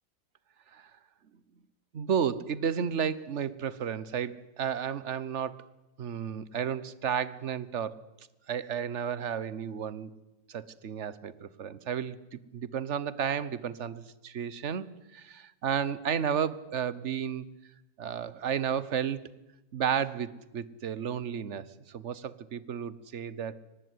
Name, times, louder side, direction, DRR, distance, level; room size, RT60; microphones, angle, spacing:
voice 1, 1.9-5.7 6.0-7.9 8.5-10.1 10.5-14.8 15.1-17.5 18.0-19.2 19.7-23.6, right 8 dB, 50° right, 17 dB, 1.2 m, -32 dB
23.5 x 19.0 x 9.5 m, 1.0 s
omnidirectional pair, 1.9 m